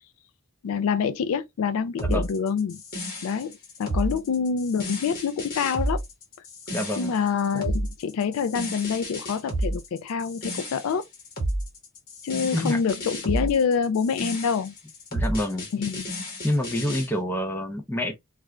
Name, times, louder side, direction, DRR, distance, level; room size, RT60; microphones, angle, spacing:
voice 1, 0.6-2.8 3.2-3.5 3.8-6.0 7.0-11.0 12.2-14.7 15.7-16.1, left 6 dB, 75° left, 0.3 m, -26 dB
sound 1, 2.0-17.1, right 1 dB, 45° left, 1.0 m, -31 dB
voice 2, 6.7-7.1 12.5-12.8 15.1-15.7 16.4-18.1, left 1 dB, 10° left, 0.6 m, -27 dB
2.4 x 2.3 x 3.0 m
head